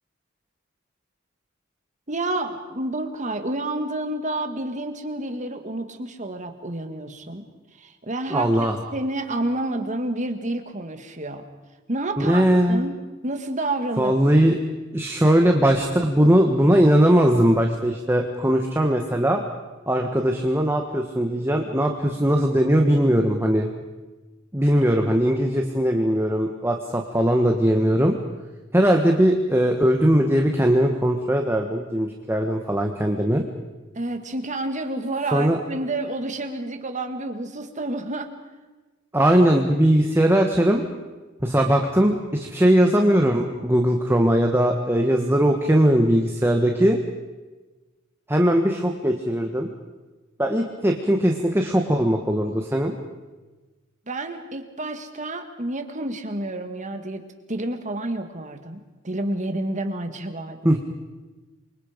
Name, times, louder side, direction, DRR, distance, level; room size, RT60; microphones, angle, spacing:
voice 1, 2.1-7.4 7.8-11.4 11.9-12.9 13.2-14.4 24.7-24.8 34.0-38.3 54.1-57.2 57.5-60.8, right 2 dB, 35° right, 6 dB, 2.1 m, -29 dB
voice 2, 8.3-8.7 12.2-12.8 14.0-14.6 14.9-19.4 19.9-23.7 24.5-28.1 28.7-33.4 35.3-35.6 39.1-40.8 41.4-47.0 48.3-49.7 50.4-52.9 60.6-60.8, equal, 10° right, 3 dB, 1.4 m, -20 dB
27.5 x 24.5 x 5.3 m, 1.2 s
head